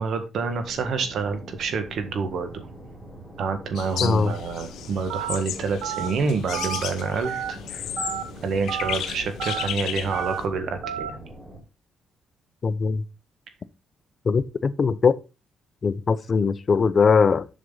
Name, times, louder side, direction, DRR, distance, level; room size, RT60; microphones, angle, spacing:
voice 1, 0.0-2.7 3.4-7.6 8.0-8.1 8.4-11.2, right 4 dB, 65° right, 1.7 m, -28 dB
sound 1, 0.6-11.6, right 1 dB, 10° right, 3.8 m, -43 dB
sound 2, 3.7-10.5, left 10 dB, 75° left, 1.0 m, -34 dB
voice 2, 4.0-4.3 12.6-13.0 14.2-15.2 15.8-17.5, left 5 dB, 40° left, 0.6 m, -21 dB
Telephone, 5.1-5.4 5.8-6.1 6.5-6.8 7.2-7.5 8.0-8.2 8.7-8.9 9.4-9.7 10.1-10.4 10.8-11.1, right 10 dB, 90° right, 1.0 m, -30 dB
7.7 x 6.2 x 3.9 m
cardioid pair, 90°, 0 cm